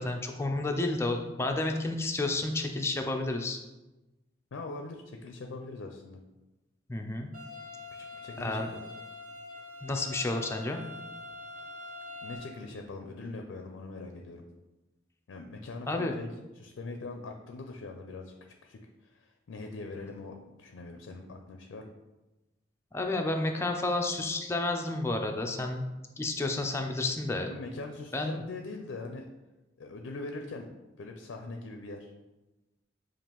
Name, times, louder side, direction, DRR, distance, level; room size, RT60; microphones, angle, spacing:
voice 1, 0.0-3.6 6.9-7.3 8.4-8.7 9.8-10.8 15.9-16.1 22.9-25.8 26.2-27.5 28.1-28.4, left 2 dB, 15° left, 3 dB, 0.4 m, -31 dB
voice 2, 4.5-6.2 7.9-8.7 12.2-14.4 15.3-16.3 16.6-18.3 18.6-21.9 27.5-29.2 29.8-30.7 31.0-32.1, left 3 dB, 90° left, 4 dB, 0.4 m, -42 dB
sound 1, 7.3-12.4, left 2 dB, 45° right, 0.9 m, -44 dB
6.9 x 2.5 x 3.0 m, 1.1 s
head